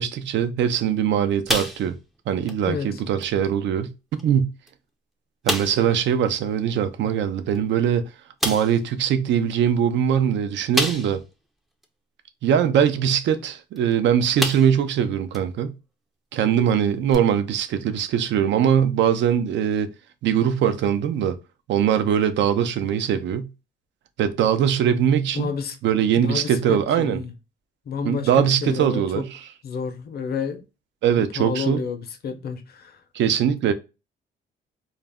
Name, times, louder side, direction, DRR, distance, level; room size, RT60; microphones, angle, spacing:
voice 1, 0.0-1.9 2.3-3.9 4.2-4.5 5.4-8.0 8.4-11.2 12.4-15.7 16.3-19.9 20.2-21.4 21.7-23.5 24.2-25.5 25.8-27.2 28.0-29.5 31.0-31.8 33.1-33.7, right 9 dB, 70° right, 0.4 m, -21 dB
sound 1, 1.5-2.2 2.5-2.7 3.2-3.3 4.2-4.3 4.7-4.8 5.5-5.9 7.5-7.6 8.4-8.8 10.7-11.3 11.8-11.9 13.8-13.9 14.4-14.9 15.3-15.4 17.1-17.2, equal, ahead, 0.4 m, -27 dB
voice 2, 2.7-3.0 25.3-25.8 26.2-27.3 27.9-29.3 29.6-30.6 31.2-33.0, left 6 dB, 55° left, 0.6 m, -30 dB
2.4 x 2.0 x 3.4 m
cardioid pair, 90°, 20 cm